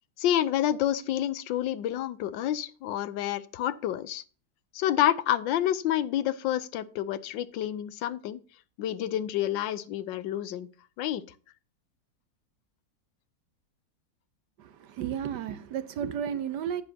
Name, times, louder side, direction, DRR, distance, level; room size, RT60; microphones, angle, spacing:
voice 1, 0.2-4.2 4.7-8.4 8.8-10.7 11.0-11.2, left 12 dB, 85° left, 1.4 m, -28 dB
voice 2, 14.6-16.8, right 8 dB, 70° right, 1.4 m, -33 dB
10.0 x 9.7 x 2.8 m
omnidirectional pair, 2.0 m